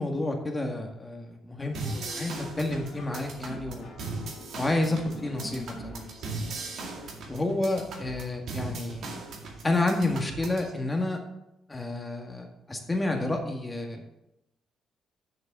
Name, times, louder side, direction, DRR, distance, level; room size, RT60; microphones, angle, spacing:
voice 1, 0.0-3.9 4.5-6.0 7.3-9.1 9.6-11.2 11.7-14.0, left 2 dB, 20° left, 3 dB, 1.9 m, -30 dB
sound 1, 1.7-10.7, right 3 dB, 70° right, 2.1 m, -39 dB
sound 2, 1.8-7.1, left 2 dB, 60° left, 2.5 m, -44 dB
7.4 x 6.6 x 6.8 m, 0.86 s
cardioid pair, 90°, 0 cm